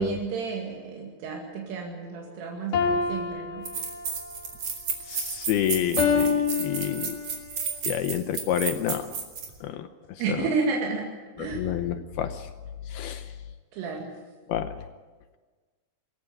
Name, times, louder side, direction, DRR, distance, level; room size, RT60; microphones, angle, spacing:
voice 1, 0.0-3.7 10.2-11.0 11.4-11.6 13.7-14.1, right 5 dB, 80° right, -1 dB, 4.8 m, -31 dB
sound 1, 2.7-4.3 6.0-7.5, left 6 dB, 50° left, 2.9 m, -26 dB
sound 2, 3.1-3.2 3.6-9.5, right 6 dB, 40° right, 3.7 m, -32 dB
voice 2, 5.0-7.2 7.8-9.1 9.6-10.5 11.4-12.5 12.9-13.3 14.5-14.9, left 10 dB, 85° left, 9 dB, 2.2 m, -29 dB
25.0 x 14.5 x 8.7 m, 1.4 s
omnidirectional pair, 5.6 m